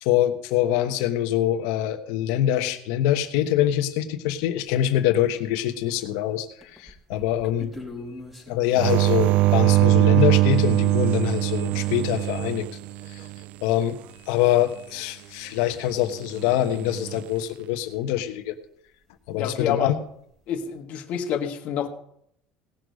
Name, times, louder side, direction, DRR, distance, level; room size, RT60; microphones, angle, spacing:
voice 1, 0.0-6.5 6.8-7.7 8.5-12.7 13.1-13.2 13.6-14.0 14.3-18.6 19.3-20.0, left 12 dB, 80° left, 8 dB, 1.2 m, -24 dB
sound 1, 4.7-4.8 5.2-6.2 6.6-10.9 13.6-13.7 13.8-13.9 15.0-15.1 15.6-15.7 19.3-19.4 19.6-20.0, left 2 dB, 5° right, 4.2 m, -43 dB
sound 2, 8.8-13.4 16.7-17.2, right 18 dB, 60° right, 0.4 m, -21 dB
voice 2, 19.4-20.0 20.5-21.9, left 9 dB, 60° left, 6 dB, 1.5 m, -27 dB
18.0 x 6.5 x 5.3 m, 0.70 s
supercardioid pair, 115°, 3 cm